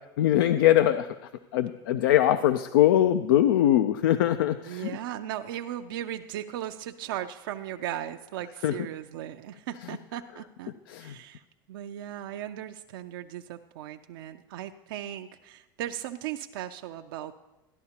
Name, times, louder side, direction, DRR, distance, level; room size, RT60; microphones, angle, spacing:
voice 1, 0.2-1.1 1.5-4.9 8.6-8.7 10.9-11.1, left 12 dB, 90° left, 11 dB, 0.4 m, -22 dB
voice 2, 4.7-17.3, right 11 dB, 85° right, 5 dB, 0.4 m, -37 dB
14.0 x 11.0 x 2.9 m, 1.0 s
supercardioid pair, 115°, 11 cm